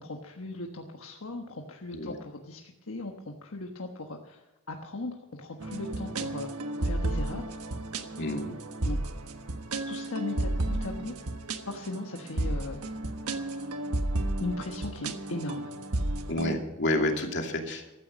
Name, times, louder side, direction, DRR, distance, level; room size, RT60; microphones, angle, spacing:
voice 1, 0.0-6.5 6.8-7.5 8.8-9.0 9.9-11.1 11.6-12.8 14.4-15.7, left 2 dB, 70° left, 2 dB, 1.3 m, -38 dB
sound 1, 5.6-16.6, right 1 dB, 90° right, 1.3 m, -33 dB
voice 2, 8.2-8.6 16.3-17.8, left 1 dB, 50° left, 2 dB, 2.6 m, -29 dB
15.0 x 13.5 x 5.4 m, 1.0 s
head